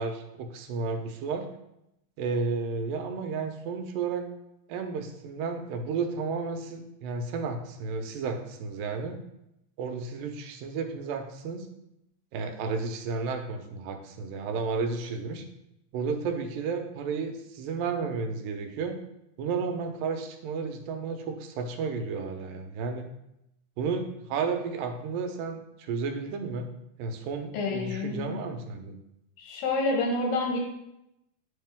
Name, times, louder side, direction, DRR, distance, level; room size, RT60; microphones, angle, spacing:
voice 1, 0.0-1.5 2.2-4.3 4.7-9.2 9.8-11.7 12.3-15.4 15.9-19.0 19.4-23.1 23.8-26.7 27.0-29.0, right 4 dB, 85° right, 5 dB, 2.5 m, -32 dB
voice 2, 27.5-28.3 29.4-30.6, left 3 dB, 90° left, 0 dB, 2.9 m, -28 dB
9.6 x 3.7 x 3.5 m, 0.83 s
omnidirectional pair, 3.9 m